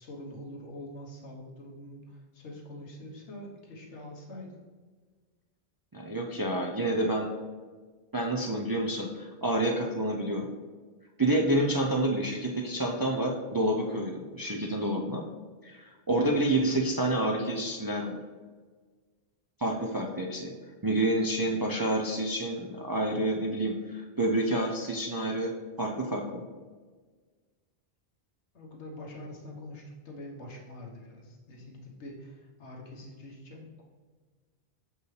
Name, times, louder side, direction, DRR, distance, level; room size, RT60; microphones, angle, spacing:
voice 1, 0.0-4.5 28.5-33.8, left 1 dB, 90° left, -1 dB, 1.4 m, -45 dB
voice 2, 5.9-7.3 8.1-10.5 11.2-15.2 15.6-18.2 19.6-20.5 20.8-25.5 25.8-26.5, right 1 dB, 35° right, -1 dB, 0.3 m, -28 dB
6.5 x 5.3 x 3.2 m, 1.4 s
omnidirectional pair, 1.1 m